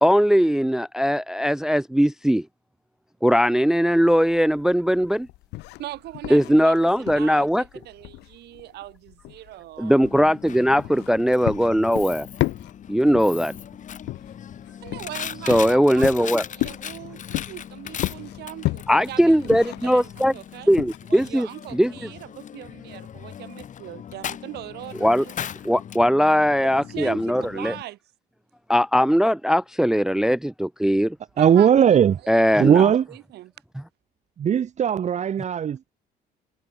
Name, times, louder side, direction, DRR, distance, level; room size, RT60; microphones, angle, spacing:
voice 1, 0.0-2.5 3.2-5.3 6.3-7.6 9.8-12.3 12.9-13.5 15.5-16.4 18.9-20.3 20.7-21.5 21.7-21.9 25.0-25.2 25.7-27.7 28.7-31.2 32.3-32.9, equal, 5° right, 0.4 m, -20 dB
sound 1, 3.9-21.0, left 19 dB, 85° left, 2.3 m, -34 dB
voice 2, 5.8-10.3 10.9-11.0 14.8-20.7 21.1-25.3 26.6-28.0 31.4-31.7 32.6-33.5, right 15 dB, 75° right, 4.1 m, -40 dB
Coin (dropping), 10.1-27.8, left 9 dB, 50° left, 3.6 m, -39 dB
voice 3, 31.4-32.2 32.6-33.1 34.4-35.9, right 8 dB, 45° right, 1.6 m, -18 dB
cardioid pair, 110°, 17 cm